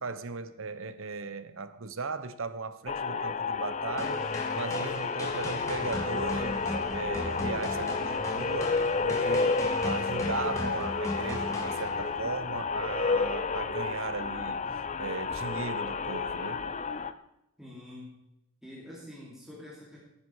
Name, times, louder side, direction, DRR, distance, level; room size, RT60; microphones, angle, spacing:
voice 1, 0.0-4.2 4.5-14.6 15.0-16.6, right 4 dB, 60° right, 0.9 m, -37 dB
sound 1, 2.9-17.1, left 4 dB, 35° left, 0.6 m, -31 dB
sound 2, 4.0-12.3, left 2 dB, 15° left, 2.1 m, -37 dB
sound 3, 5.2-15.6, equal, 85° left, 2.4 m, -51 dB
voice 2, 17.6-18.1 18.6-20.0, left 1 dB, ahead, 2.9 m, -46 dB
16.5 x 10.0 x 4.8 m
head